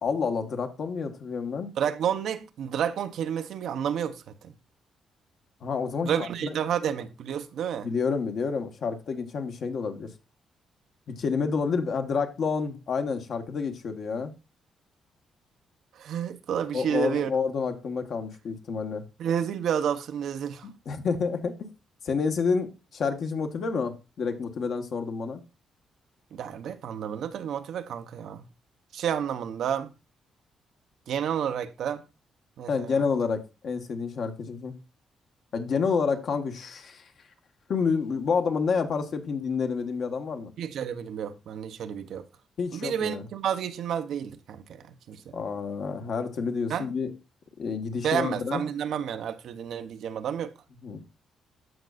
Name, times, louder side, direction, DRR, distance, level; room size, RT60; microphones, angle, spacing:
voice 1, 0.0-1.7 5.6-6.5 7.8-10.1 11.1-14.3 16.7-19.0 20.6-21.7 22.0-25.4 32.7-34.8 35.5-37.1 37.7-40.5 42.6-43.3 45.3-47.1 47.6-48.6 50.8-51.0, left 5 dB, 55° left, 1.2 m, -29 dB
voice 2, 1.8-4.5 6.0-7.9 16.0-17.3 19.2-20.7 26.3-28.5 28.9-29.9 31.1-32.0 32.6-33.0 40.6-42.2 42.7-45.4 46.7-46.9 48.0-50.5, right 8 dB, 70° right, 0.7 m, -30 dB
14.0 x 5.2 x 2.4 m
cardioid pair, 145°, 0 cm